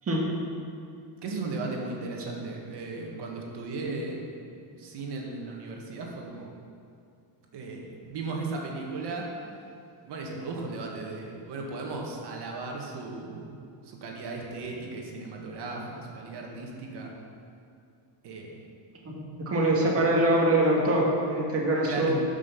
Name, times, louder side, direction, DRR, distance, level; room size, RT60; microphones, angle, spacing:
voice 1, 1.2-4.3 4.7-6.5 7.5-9.3 10.0-13.6 13.8-17.1 18.2-18.6 21.8-22.1, right 3 dB, 60° right, -1 dB, 2.0 m, -36 dB
voice 2, 19.0-22.1, right 1 dB, 30° right, -2 dB, 1.9 m, -24 dB
13.5 x 6.3 x 6.0 m, 2.4 s
cardioid pair, 170°, 47 cm